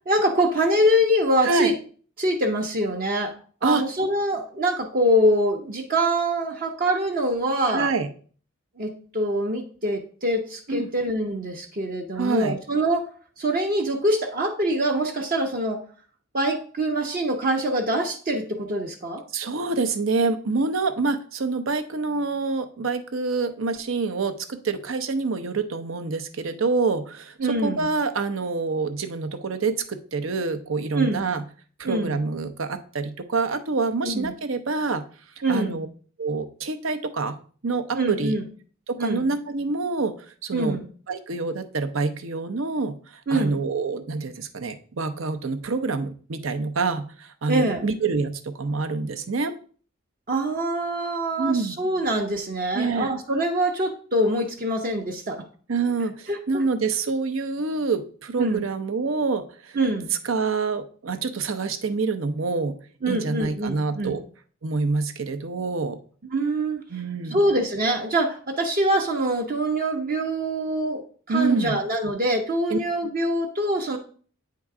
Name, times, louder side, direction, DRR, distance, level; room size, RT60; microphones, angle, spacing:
voice 1, 0.1-1.7 2.2-3.3 3.6-7.9 8.8-13.1 13.4-15.8 16.3-19.2 27.4-27.9 30.9-31.3 31.8-32.2 34.0-34.3 35.4-35.8 37.9-38.4 39.0-39.3 40.5-40.9 43.3-43.6 47.5-47.8 50.3-55.4 56.3-56.6 58.4-58.6 59.8-60.1 63.0-64.2 66.3-66.8 67.3-74.0, right 1 dB, 45° right, 2 dB, 0.7 m, -24 dB
voice 2, 1.4-1.8 3.6-3.8 7.7-8.1 10.7-10.9 12.2-12.6 19.3-31.4 31.8-35.0 35.5-35.9 36.2-37.4 37.6-38.4 38.9-40.1 40.4-40.8 41.1-49.5 51.4-51.8 52.7-53.1 55.7-59.8 60.2-62.8 63.1-64.2 64.6-66.0 66.9-67.4 71.3-71.8 72.7-72.8, right 4 dB, 80° right, 8 dB, 0.7 m, -26 dB
8.4 x 3.8 x 4.8 m, 0.43 s
head